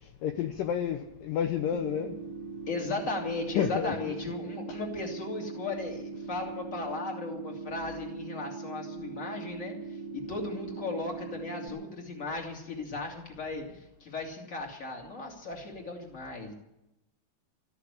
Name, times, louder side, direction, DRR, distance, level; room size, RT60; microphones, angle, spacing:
voice 1, 0.0-2.2 3.5-4.3 4.7-4.8, left 9 dB, 80° left, 6 dB, 2.0 m, -31 dB
sound 1, 1.7-11.7, right 4 dB, 70° right, 3.1 m, -40 dB
voice 2, 2.7-9.7 10.1-16.5, left 3 dB, 20° left, 1 dB, 2.4 m, -36 dB
14.0 x 9.8 x 9.7 m, 0.87 s
omnidirectional pair, 5.0 m